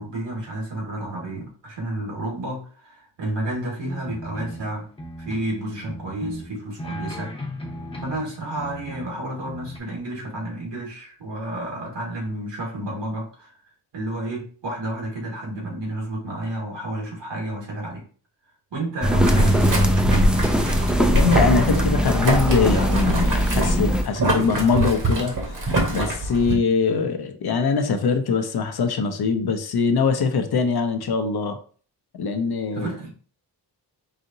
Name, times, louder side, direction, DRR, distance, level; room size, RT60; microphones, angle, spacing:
voice 1, 0.0-4.9 5.2-7.3 8.0-13.5 13.9-18.0 18.7-19.7 32.7-33.1, right 1 dB, 80° right, -3 dB, 2.0 m, -31 dB
sound 1, 3.8-5.5 5.8-8.3 8.6-9.2 9.4-9.8, equal, 15° left, 0.8 m, -36 dB
sound 2, 19.0-24.0, equal, ahead, 0.3 m, -20 dB
Boiling, 19.2-26.5, right 2 dB, 45° right, 1.1 m, -26 dB
voice 2, 21.0-25.3 25.9-31.6 32.1-32.9, left 5 dB, 60° left, 8 dB, 0.7 m, -22 dB
4.9 x 2.7 x 2.7 m, 0.42 s
wide cardioid pair, 120°, 42 cm